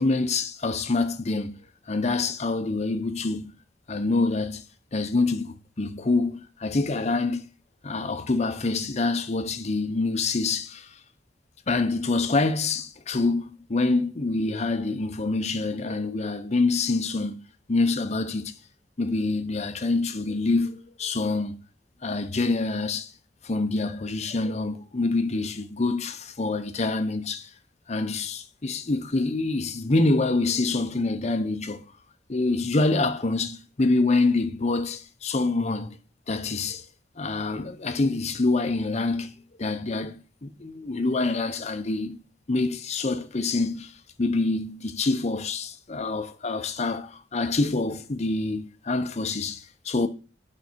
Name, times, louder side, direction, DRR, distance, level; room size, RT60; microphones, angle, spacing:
voice 1, 0.0-1.6 1.9-3.5 3.9-4.6 4.9-7.4 7.8-10.9 11.7-17.4 17.7-18.5 19.0-21.6 22.0-23.1 23.4-27.5 27.9-31.8 32.3-36.0 36.3-36.8 37.2-39.3 39.6-42.2 42.5-43.9 44.2-50.1, left 3 dB, 40° left, 0.8 m, -26 dB
9.5 x 5.3 x 4.5 m
head